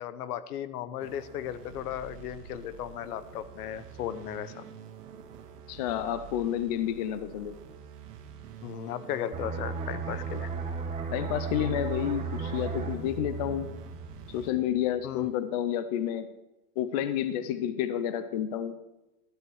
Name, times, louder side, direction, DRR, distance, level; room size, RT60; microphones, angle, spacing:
voice 1, 0.0-4.6 8.6-10.5 15.0-15.3, left 10 dB, 70° left, 15 dB, 0.9 m, -36 dB
sound 1, 1.0-14.5, right 8 dB, 80° right, 1.7 m, -48 dB
voice 2, 5.7-7.5 11.1-13.7 14.3-16.3 16.8-18.7, left 10 dB, 30° left, 12 dB, 0.3 m, -30 dB
sound 2, 9.3-14.7 15.0-15.3, right 5 dB, 15° right, 1.0 m, -35 dB
12.5 x 8.4 x 4.8 m, 0.97 s
supercardioid pair, 150°, 47 cm